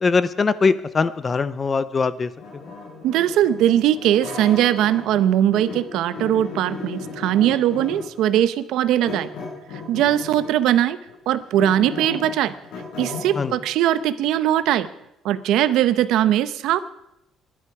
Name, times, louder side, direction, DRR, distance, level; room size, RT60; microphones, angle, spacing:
voice 1, 0.0-2.6 13.3-13.5, left 4 dB, 20° left, 16 dB, 0.5 m, -22 dB
sound 1, 2.4-5.2 5.5-8.2 9.0-10.6 11.1-13.6, left 4 dB, 90° left, 7.4 m, -35 dB
voice 2, 3.0-9.3 9.9-11.0 11.3-12.5 13.0-14.9 15.2-16.8, right 11 dB, 70° right, 14 dB, 0.8 m, -20 dB
20.5 x 11.0 x 4.8 m, 0.85 s
cardioid pair, 175°, 0 cm